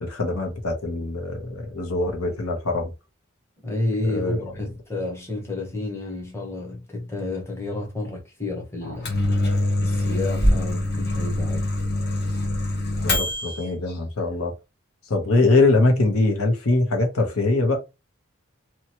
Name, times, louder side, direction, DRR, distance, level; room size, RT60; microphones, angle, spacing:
voice 1, 0.0-2.9 4.0-4.4 13.0-14.5 15.1-17.8, left 2 dB, 90° left, 0.9 m, -22 dB
voice 2, 3.6-9.4 9.8-11.7, left 2 dB, 10° left, 0.8 m, -30 dB
Microwave oven, 8.8-13.6, left 1 dB, 50° left, 0.8 m, -24 dB
2.9 x 2.3 x 2.9 m
head